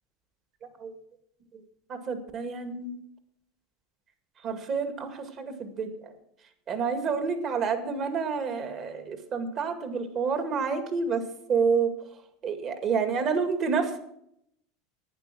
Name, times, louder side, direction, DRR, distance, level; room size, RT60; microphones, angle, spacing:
voice 1, 0.6-1.0 1.5-1.6 1.9-3.0 4.4-6.2 6.7-11.2 11.5-14.0, right 5 dB, 40° right, 7 dB, 2.0 m, -29 dB
11.5 x 9.5 x 6.0 m, 0.74 s
supercardioid pair, 120°, 0 cm